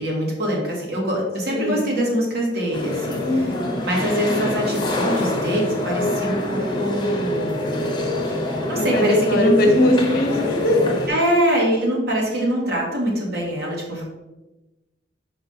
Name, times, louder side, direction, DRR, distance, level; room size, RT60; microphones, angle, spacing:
voice 1, 0.0-3.2 3.8-7.8 8.5-9.5 11.1-14.0, right 1 dB, 60° right, -2 dB, 1.7 m, -23 dB
voice 2, 1.5-1.9 3.2-3.8 8.7-11.0, left 1 dB, 55° left, 2 dB, 1.1 m, -20 dB
sound 1, 2.7-11.1, left 1 dB, 25° left, 1.1 m, -25 dB
5.2 x 4.7 x 4.2 m, 1.0 s
head